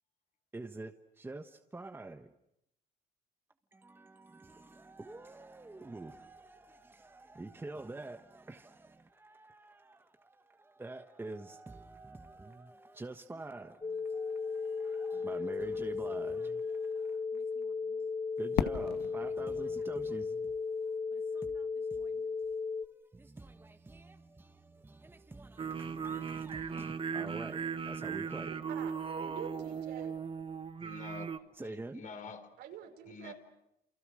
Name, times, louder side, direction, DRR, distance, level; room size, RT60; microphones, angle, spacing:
voice 1, 0.5-2.3 3.7-22.3 22.7-28.5 31.5-32.1, right 2 dB, 15° right, 7 dB, 1.3 m, -47 dB
sound 1, 13.8-22.9, left 4 dB, 25° left, 1.2 m, -36 dB
Fireworks, 18.6-21.4, left 10 dB, 75° left, 2.0 m, -38 dB
sound 2, 25.6-31.4, right 6 dB, 30° right, 1.3 m, -38 dB
voice 2, 28.5-30.1 32.6-33.3, right 9 dB, 85° right, 5 dB, 5.6 m, -46 dB
voice 3, 30.8-31.3 31.6-32.5 33.1-33.3, left 5 dB, 50° left, 8 dB, 4.0 m, -47 dB
30.0 x 28.5 x 6.4 m, 0.80 s
cardioid pair, 110°, 17 cm